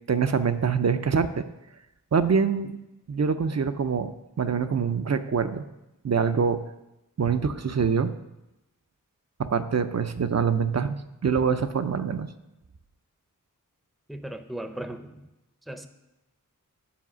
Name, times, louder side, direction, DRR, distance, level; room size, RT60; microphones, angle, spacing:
voice 1, 0.1-1.5 2.1-2.8 3.1-5.6 6.0-6.6 7.2-8.1 9.4-11.0 11.2-12.3, right 6 dB, 50° right, 10 dB, 0.5 m, -25 dB
voice 2, 14.1-15.1 15.7-15.9, right 1 dB, ahead, 8 dB, 0.6 m, -36 dB
8.5 x 4.8 x 6.1 m, 0.96 s
wide cardioid pair, 45°, 34 cm